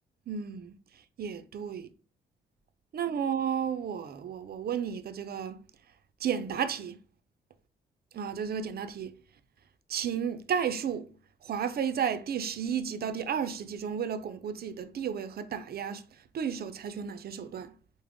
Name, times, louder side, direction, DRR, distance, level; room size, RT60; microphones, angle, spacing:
voice 1, 0.3-0.7 1.2-1.9 2.9-5.6 6.2-7.0 8.1-9.2 9.9-11.1 11.4-16.0 16.3-17.8, right 7 dB, 50° right, 0.5 m, -33 dB
3.6 x 2.0 x 3.6 m
supercardioid pair, 60°, 20 cm